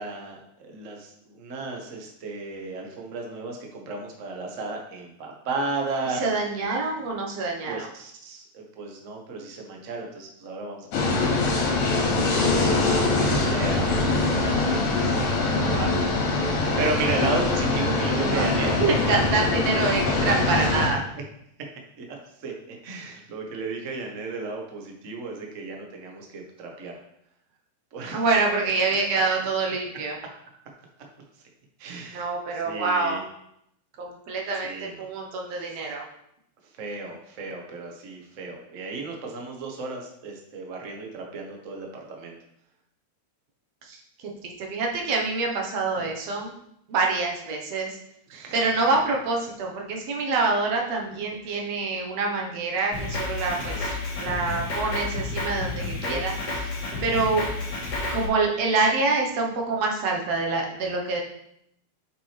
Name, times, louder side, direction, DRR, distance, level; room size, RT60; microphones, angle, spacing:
voice 1, 0.0-6.2 7.7-11.4 12.1-12.5 12.8-16.5 16.8-18.7 20.4-20.7 22.0-22.1 22.4-27.0 27.9-28.2 31.8-32.3 32.6-33.2 34.6-35.1 35.5-35.8 36.8-42.4 45.9-46.1 48.3-48.6 51.4-51.6 53.6-53.8 56.0-56.2, right 3 dB, 85° right, 1 dB, 0.6 m, -34 dB
voice 2, 6.1-7.9 18.2-18.5 18.8-21.1 28.1-30.2 32.1-33.2 34.0-36.0 43.8-44.0 44.4-46.5 46.9-48.0 48.5-56.3 57.0-57.5 58.1-61.2, right 3 dB, 65° right, 0 dB, 2.1 m, -26 dB
sound 1, 10.9-20.9, left 3 dB, 75° left, 2.9 m, -23 dB
Drum kit, 52.9-58.3, left 2 dB, 60° left, 3.4 m, -30 dB
8.1 x 6.0 x 3.3 m, 0.76 s
omnidirectional pair, 3.4 m